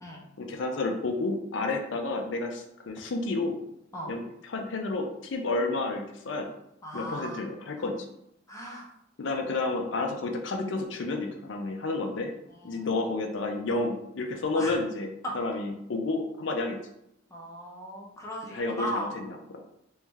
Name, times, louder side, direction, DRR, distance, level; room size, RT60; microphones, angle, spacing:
voice 1, 0.4-3.6 4.1-6.5 6.9-8.1 9.2-12.3 12.6-16.8 18.5-19.6, left 2 dB, 65° left, 3 dB, 0.5 m, -31 dB
voice 2, 6.8-7.8 8.5-8.9 12.5-12.9 14.5-14.8 15.2-15.3 17.3-19.1, equal, 15° left, -3 dB, 0.8 m, -37 dB
3.3 x 3.1 x 3.4 m, 0.80 s
head